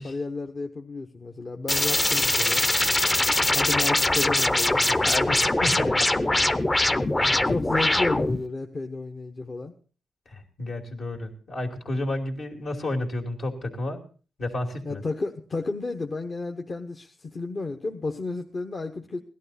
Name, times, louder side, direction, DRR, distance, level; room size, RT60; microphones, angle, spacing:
voice 1, 0.0-2.6 3.5-5.4 7.3-9.7 14.8-19.2, left 3 dB, 45° left, 3 dB, 1.1 m, -32 dB
sound 1, 1.7-8.4, left 1 dB, 20° left, 0.7 m, -22 dB
voice 2, 5.0-6.1 7.2-7.4 10.3-14.0 14.4-15.0, left 1 dB, 70° left, 0 dB, 2.8 m, -31 dB
17.0 x 12.0 x 4.2 m, 0.38 s
cardioid pair, 65°, 0 cm